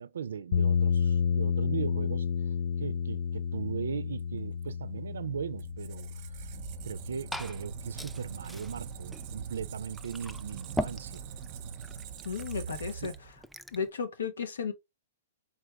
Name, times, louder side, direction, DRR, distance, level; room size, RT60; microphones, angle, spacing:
voice 1, 0.0-11.2 12.7-12.8 13.0-13.1, right 7 dB, 85° right, 0.4 m, -38 dB
sound 1, 0.5-8.6, left 6 dB, 55° left, 0.5 m, -31 dB
Squeak, 5.6-13.4, right 7 dB, 45° right, 0.8 m, -43 dB
Glass / Fill (with liquid), 6.8-13.9, equal, ahead, 0.4 m, -42 dB
voice 2, 12.2-13.1 13.7-14.7, left 6 dB, 85° left, 1.1 m, -34 dB
4.4 x 3.4 x 3.3 m
hypercardioid pair, 130°, 0 cm